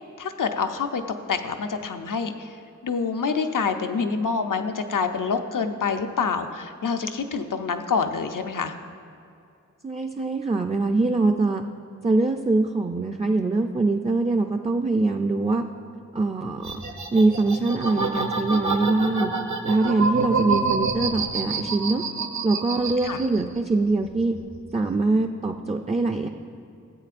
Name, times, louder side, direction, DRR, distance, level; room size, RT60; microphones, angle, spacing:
voice 1, 0.2-1.0 1.3-2.6 2.8-8.7 23.0-23.2, left 5 dB, 85° left, 7 dB, 0.6 m, -26 dB
voice 2, 9.8-11.6 12.0-15.6 16.1-16.7 17.1-19.3 19.6-22.0 22.4-24.4 24.7-26.3, right 3 dB, 20° right, 3 dB, 0.4 m, -23 dB
sound 1, 16.6-23.6 23.9-24.7, right 4 dB, 65° right, 0.8 m, -27 dB
13.5 x 8.3 x 2.5 m, 2.5 s
wide cardioid pair, 65°, 31 cm